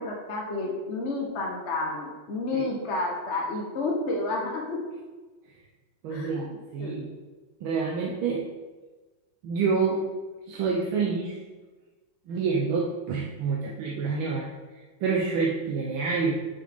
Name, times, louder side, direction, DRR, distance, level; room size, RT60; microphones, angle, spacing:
voice 1, 0.0-4.8 6.1-7.0, left 2 dB, 40° left, -2 dB, 1.0 m, -31 dB
voice 2, 6.0-7.1 7.6-8.5 9.4-10.0 10.5-11.4 12.3-14.5 15.0-16.5, right 5 dB, 75° right, -2 dB, 1.6 m, -27 dB
8.1 x 5.7 x 3.6 m, 1.3 s
omnidirectional pair, 2.3 m